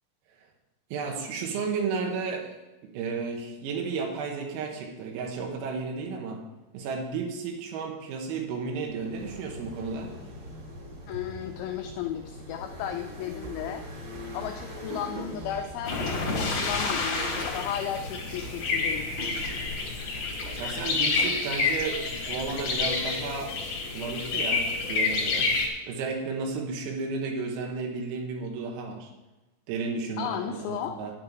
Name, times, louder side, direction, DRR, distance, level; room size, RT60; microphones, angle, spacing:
voice 1, 0.9-2.5 2.8-6.4 6.7-10.1 20.5-23.5 23.9-25.5 25.8-29.1 29.7-31.1, right 4 dB, 90° right, 2 dB, 4.1 m, -33 dB
sound 1, 8.5-19.8, left 1 dB, 45° right, 1.4 m, -43 dB
voice 2, 11.1-13.9 14.3-19.1 30.2-31.0, left 10 dB, 90° left, 5 dB, 2.6 m, -34 dB
sound 2, 13.4-17.9 18.1-21.4, right 4 dB, 65° right, 2.8 m, -44 dB
sound 3, 15.8-25.7, left 4 dB, 65° left, 1.7 m, -29 dB
9.6 x 9.4 x 4.6 m, 1.1 s
omnidirectional pair, 6.0 m